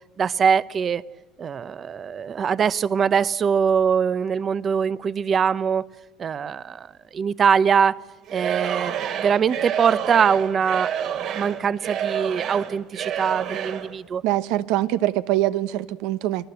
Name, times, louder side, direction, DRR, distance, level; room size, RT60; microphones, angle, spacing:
voice 1, 0.2-1.0 1.4-5.9 6.2-8.0 8.3-8.9 9.2-14.2, right 7 dB, 35° right, 0.8 m, -22 dB
Singing / Crowd, 8.3-13.9, right 9 dB, 60° right, 2.7 m, -29 dB
voice 2, 14.2-16.5, right 15 dB, 80° right, 1.1 m, -23 dB
29.5 x 20.0 x 7.9 m
cardioid pair, 115°, 0 cm